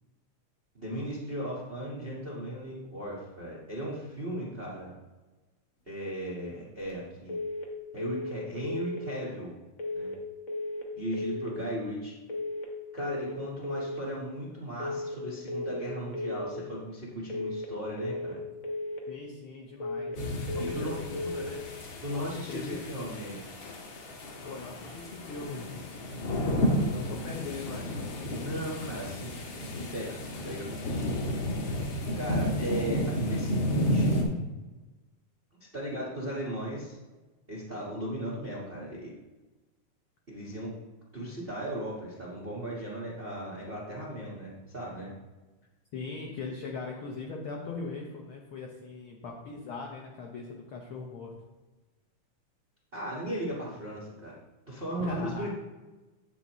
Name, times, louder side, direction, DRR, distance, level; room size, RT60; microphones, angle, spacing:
voice 1, 0.7-4.9 5.9-7.4 7.9-9.5 9.9-10.1 10.9-12.1 12.9-18.4 20.6-21.0 22.0-23.4 28.4-29.5 29.9-30.2 30.4-31.1 32.1-34.1 35.6-37.0 37.5-39.1 40.3-40.7 41.1-45.1 52.9-54.4 54.7-55.5, right 1 dB, 80° right, -5 dB, 0.5 m, -37 dB
sound 1, 7.3-7.7 8.0-8.4 8.6-9.0 9.8-10.2 10.5-10.9 11.1-11.5 12.3-12.7 13.0-13.4 13.6-14.0 14.8-15.2 15.5-15.9 16.1-16.5 17.3-17.7 18.0-18.4 18.6-19.0 19.8-20.2 20.5-20.9 21.1-21.5, left 2 dB, 90° left, 0.7 m, -35 dB
voice 2, 19.1-23.3 24.4-25.7 26.9-27.9 45.9-51.3 55.0-55.5, left 4 dB, 75° left, 0 dB, 1.2 m, -40 dB
sound 2, 20.2-34.2, equal, 55° left, 1.5 m, -32 dB
8.2 x 8.0 x 3.0 m, 1.2 s
omnidirectional pair, 3.5 m